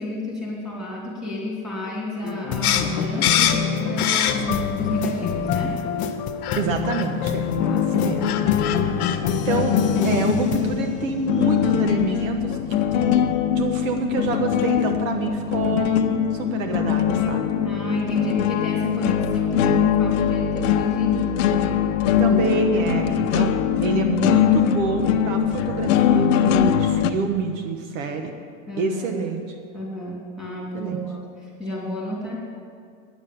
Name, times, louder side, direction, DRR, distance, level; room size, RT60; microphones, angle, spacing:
voice 1, 0.0-5.8 7.6-8.3 8.8-9.2 17.6-21.8 22.2-22.4 22.7-22.9 28.7-29.2 29.7-32.4, left 1 dB, ahead, -5 dB, 3.0 m, -30 dB
sound 1, 2.2-11.9, left 7 dB, 20° left, 0.4 m, -27 dB
sound 2, 2.6-4.7 5.1-5.8 6.4-6.6 6.9-7.1 7.9-8.0 8.2-9.2, left 10 dB, 85° left, 1.1 m, -23 dB
voice 2, 6.5-8.2 9.4-9.8 10.0-13.2 13.5-15.9 16.3-17.5 22.2-28.3 28.8-29.4 30.7-31.0, right 4 dB, 65° right, 5 dB, 1.1 m, -27 dB
sound 3, 7.6-27.1, left 9 dB, 60° left, 0.8 m, -22 dB
9.5 x 7.2 x 8.5 m, 2.2 s
supercardioid pair, 145°, 43 cm